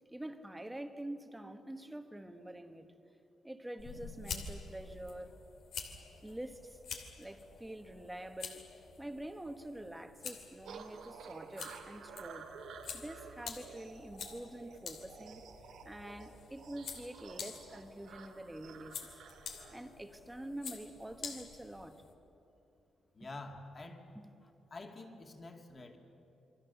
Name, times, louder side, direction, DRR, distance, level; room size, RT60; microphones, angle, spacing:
voice 1, 0.1-2.9 3.4-5.3 6.2-6.8 7.2-8.7 9.0-12.5 12.9-15.4 15.8-19.2 19.7-22.0 23.2-23.3 24.1-24.3, right 1 dB, 5° right, 7 dB, 1.3 m, -46 dB
sound 1, 3.8-22.1, left 5 dB, 70° left, 2.6 m, -48 dB
sound 2, 10.7-19.8, right 6 dB, 85° right, 2.1 m, -52 dB
voice 2, 23.1-24.0 24.7-26.0, left 2 dB, 30° left, 3 dB, 2.4 m, -47 dB
28.0 x 24.0 x 7.0 m, 2.9 s
cardioid pair, 140°, 0 cm